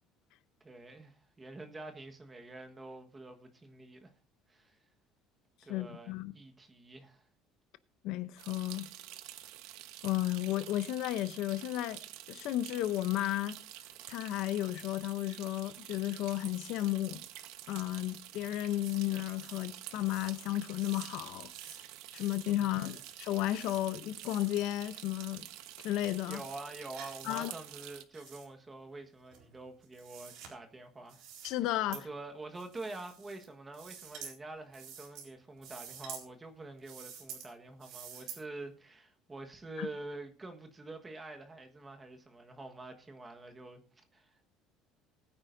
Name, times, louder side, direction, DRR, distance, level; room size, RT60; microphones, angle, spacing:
voice 1, 0.6-4.1 4.5-4.8 5.6-7.3 22.6-22.9 26.2-31.5 31.9-44.5, right 2 dB, 15° right, 1.4 m, -47 dB
voice 2, 5.7-6.3 8.0-8.9 10.0-12.0 12.3-13.6 14.1-17.2 17.7-21.5 22.1-25.5 25.8-26.4 27.2-27.5 31.4-32.0 39.8-39.9, left 14 dB, 60° left, 0.7 m, -33 dB
sound 1, 8.4-28.0, right 13 dB, 80° right, 1.2 m, -48 dB
sound 2, 18.8-19.0 19.3-19.7 20.0-20.4 20.8-21.1 21.4-21.8 22.1-22.4 22.7-23.1 23.5-23.8 24.2-24.5 25.2-25.3 25.7-25.8 26.2-26.6 26.9-27.4 27.6-28.4 29.3-30.5 31.1-31.5 31.9-32.0 32.5-33.4 33.7-34.3 34.7-35.3 35.6-36.2 36.8-37.5 37.8-38.4, right 8 dB, 60° right, 4.1 m, -49 dB
20.0 x 9.6 x 2.7 m
cardioid pair, 175°, 0 cm